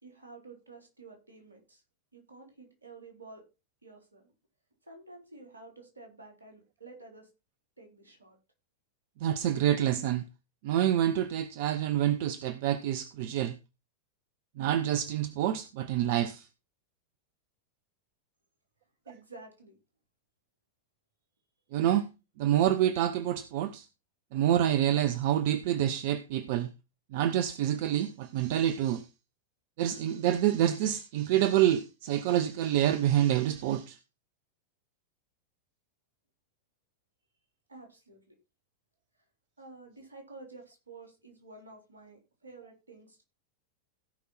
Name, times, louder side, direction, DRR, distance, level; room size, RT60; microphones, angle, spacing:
voice 1, 0.0-1.8 2.1-3.4 3.8-4.3 4.8-7.3 7.8-8.4 19.1-19.8 37.7-38.4 39.6-43.2, right 3 dB, 80° right, 3.8 m, -51 dB
voice 2, 9.2-10.2 10.6-13.5 14.6-16.5 21.7-22.1 22.4-23.9 24.3-26.7 27.1-29.1 29.8-34.0, right 11 dB, 50° right, 0.8 m, -27 dB
16.5 x 5.5 x 4.3 m
figure-of-eight pair, 90°, 0 cm